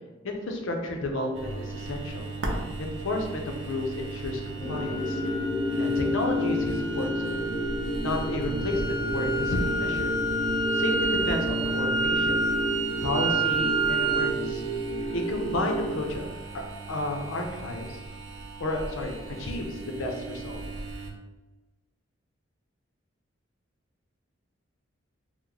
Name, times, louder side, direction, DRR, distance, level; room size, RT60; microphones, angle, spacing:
voice 1, 0.2-2.3 2.8-5.2 5.8-7.4 8.0-10.2 10.7-12.4 13.0-14.6 15.1-16.3 16.5-16.6 16.9-18.0 18.6-20.6, left 1 dB, 90° left, 2 dB, 0.6 m, -32 dB
sound 1, 1.3-21.1, right 3 dB, 85° right, 0.6 m, -38 dB
sound 2, 4.6-15.9, equal, 5° left, 1.5 m, -30 dB
sound 3, 4.7-14.3, right 2 dB, 30° right, 0.9 m, -30 dB
3.0 x 2.1 x 3.7 m, 1.2 s
head